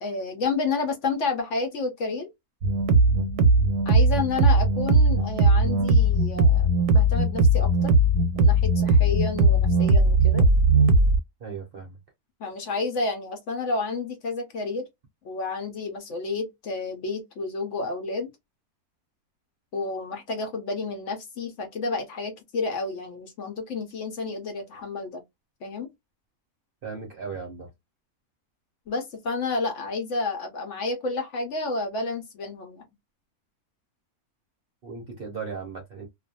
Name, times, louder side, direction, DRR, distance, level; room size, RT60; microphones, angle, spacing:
voice 1, 0.0-2.3 3.9-7.9 8.3-10.5 12.4-14.9 15.2-18.3 19.7-25.2 25.6-25.9 28.9-32.8, left 3 dB, 60° left, 0.9 m, -30 dB
sound 1, 2.6-11.2, right 2 dB, 90° right, 1.1 m, -19 dB
voice 2, 11.4-12.0 26.8-27.7 34.8-36.1, right 5 dB, 55° right, 0.7 m, -36 dB
2.4 x 2.3 x 2.6 m
omnidirectional pair, 1.6 m